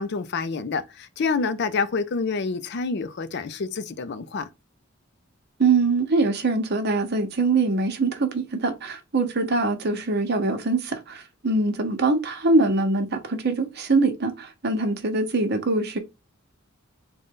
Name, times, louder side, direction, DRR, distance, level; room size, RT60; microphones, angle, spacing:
voice 1, 0.0-4.5, left 4 dB, 55° left, 0.5 m, -27 dB
voice 2, 5.6-16.0, right 3 dB, 55° right, 0.9 m, -23 dB
3.9 x 2.2 x 3.6 m
head